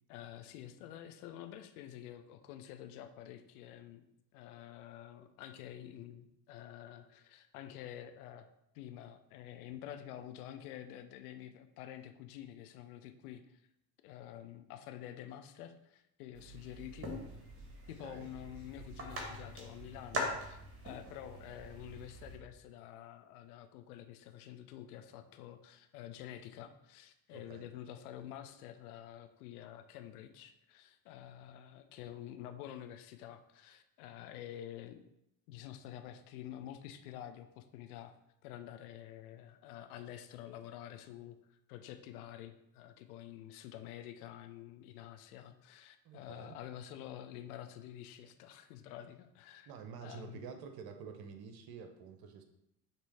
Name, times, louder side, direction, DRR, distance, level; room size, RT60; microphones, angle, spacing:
voice 1, 0.1-4.0 4.3-8.5 8.7-13.6 14.0-17.1 17.9-20.6 20.8-35.0 35.5-38.1 38.4-49.7 50.0-50.6, left 11 dB, 60° left, 9 dB, 0.7 m, -49 dB
sound 1, 16.3-22.4, equal, 25° right, 1.6 m, -43 dB
voice 2, 27.3-27.6 46.0-46.5 49.7-52.4, right 6 dB, 45° right, 5 dB, 0.9 m, -49 dB
6.6 x 3.0 x 4.8 m, 0.81 s
figure-of-eight pair, 55°, 50 cm